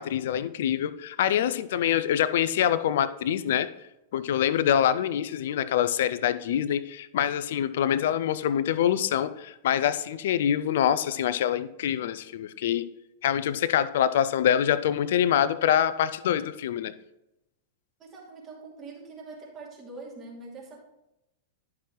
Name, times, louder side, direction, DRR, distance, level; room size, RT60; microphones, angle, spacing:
voice 1, 0.0-3.7 4.1-12.9 13.2-16.9, left 10 dB, 65° left, 14 dB, 0.5 m, -25 dB
voice 2, 18.0-20.8, right 3 dB, 30° right, -2 dB, 2.6 m, -43 dB
11.0 x 6.0 x 3.1 m, 0.90 s
hypercardioid pair, 100°, 0 cm